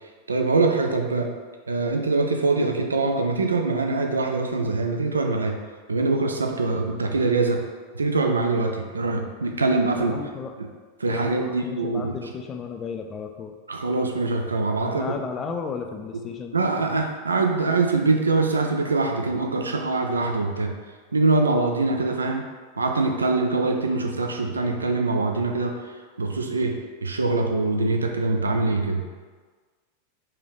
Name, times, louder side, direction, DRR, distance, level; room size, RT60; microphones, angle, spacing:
voice 1, 0.3-1.3 1.7-5.5 5.9-7.6 7.9-10.2 11.0-12.1 13.7-15.1 16.5-20.7 21.1-22.4 22.8-25.8 26.2-29.0, right 3 dB, 75° right, 3 dB, 0.3 m, -23 dB
voice 2, 10.0-10.5 11.1-13.5 14.8-16.6, left 5 dB, 25° left, 5 dB, 0.4 m, -34 dB
3.2 x 2.9 x 3.7 m, 1.5 s
figure-of-eight pair, 90°, 0 cm